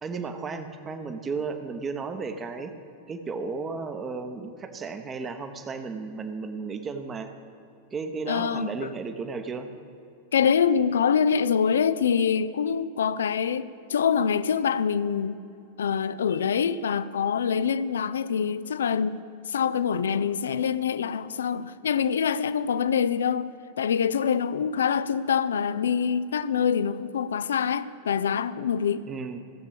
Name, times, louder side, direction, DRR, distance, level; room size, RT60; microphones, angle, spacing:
voice 1, 0.0-2.7 3.1-7.3 7.9-9.7 29.1-29.4, right 4 dB, 20° right, 1.0 m, -34 dB
voice 2, 8.3-8.9 10.3-15.4 15.8-19.2 19.5-23.5 23.8-29.0, left 7 dB, 65° left, 0.4 m, -25 dB
16.0 x 7.3 x 6.9 m
figure-of-eight pair, 90°, 0 cm